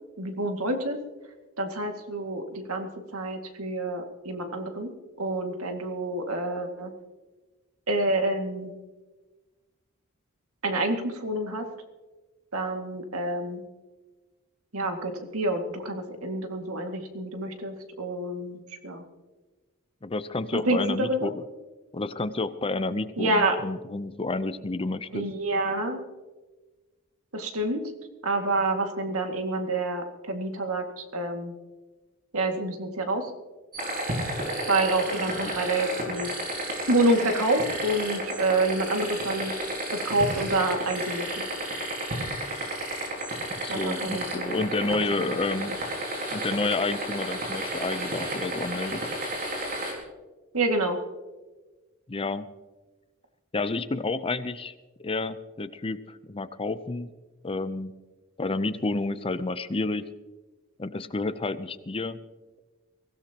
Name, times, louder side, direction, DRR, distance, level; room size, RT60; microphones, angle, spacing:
voice 1, 0.2-1.0 1.6-4.9 5.2-6.9 7.9-8.7 10.6-11.7 12.5-13.6 14.7-19.0 20.5-21.3 23.2-23.6 25.1-26.0 27.3-27.8 28.2-31.5 32.3-33.3 34.7-36.3 36.9-39.5 39.9-41.5 43.7-44.6 45.2-45.4 50.5-51.0, right 2 dB, 90° right, 4 dB, 2.1 m, -28 dB
voice 2, 20.0-21.4 21.9-25.3 35.1-35.5 43.6-45.7 46.3-49.0 52.1-52.5 53.5-54.7 55.0-57.1 57.4-57.9 58.4-60.1 60.8-62.2, left 3 dB, 25° left, 12 dB, 0.6 m, -30 dB
sound 1, 33.7-49.9, right 1 dB, 45° right, 5.1 m, -32 dB
23.0 x 16.5 x 2.9 m, 1.2 s
head